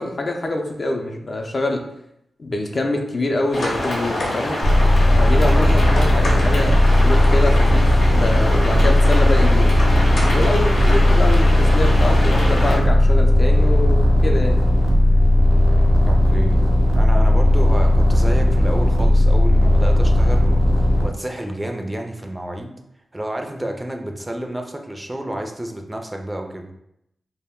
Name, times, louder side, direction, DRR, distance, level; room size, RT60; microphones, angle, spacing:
voice 1, 0.0-1.8 2.4-4.6 5.2-7.8 8.1-9.7 10.3-14.7, left 2 dB, 50° left, 2 dB, 0.4 m, -25 dB
sound 1, 3.5-12.8, left 1 dB, 85° left, 0.8 m, -25 dB
sound 2, 4.6-21.0, left 1 dB, 85° right, 0.4 m, -15 dB
voice 2, 16.0-16.7 16.9-22.8 23.1-26.7, right 1 dB, 20° right, 4 dB, 0.4 m, -30 dB
2.1 x 2.1 x 3.5 m, 0.79 s
cardioid pair, 45°, 0 cm